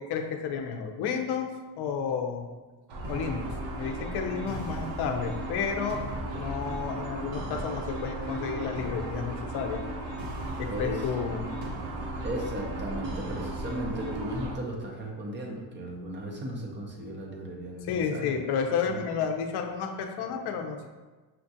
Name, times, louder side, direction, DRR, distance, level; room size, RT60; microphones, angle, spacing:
voice 1, 0.0-1.5 1.8-2.5 3.1-3.4 3.7-9.8 10.6-11.5 17.9-20.9, left 6 dB, 60° left, 4 dB, 0.6 m, -31 dB
sound 1, 2.9-14.6, right 2 dB, 80° right, 0.7 m, -38 dB
sound 2, 3.0-14.5, right 1 dB, 60° right, 1.1 m, -39 dB
voice 2, 10.6-11.0 11.9-18.4 18.9-19.0, right 1 dB, 25° right, 0 dB, 0.5 m, -36 dB
5.7 x 2.3 x 2.6 m, 1.2 s
cardioid pair, 160°, 45 cm